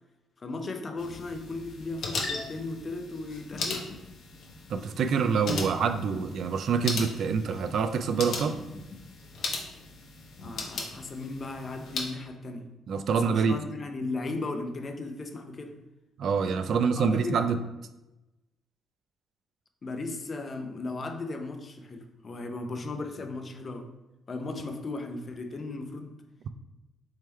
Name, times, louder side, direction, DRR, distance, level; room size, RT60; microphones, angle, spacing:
voice 1, 0.4-3.9 10.4-12.7 13.1-15.8 16.7-17.4 19.8-23.9 24.3-26.2, left 3 dB, 40° left, 6 dB, 0.5 m, -36 dB
sound 1, 1.0-12.1, left 3 dB, 70° left, 0.8 m, -37 dB
voice 2, 4.7-8.6 12.9-13.6 16.2-17.6, right 6 dB, 65° right, 9 dB, 0.3 m, -26 dB
3.5 x 3.2 x 4.3 m, 1.0 s
cardioid pair, 90°, 0 cm